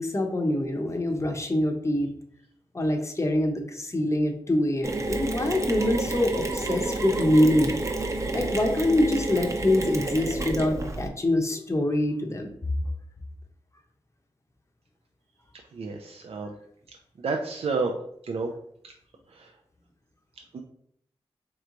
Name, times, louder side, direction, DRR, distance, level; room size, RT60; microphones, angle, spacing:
voice 1, 0.0-2.1 2.7-7.8 8.3-12.5, left 1 dB, 25° left, 3 dB, 0.8 m, -25 dB
Mechanisms, 4.8-11.1, right 2 dB, 30° right, 0.8 m, -30 dB
voice 2, 17.2-17.9 18.3-18.5, right 4 dB, 65° right, 1 dB, 0.5 m, -28 dB
3.3 x 3.1 x 3.8 m, 0.67 s
cardioid pair, 45°, 11 cm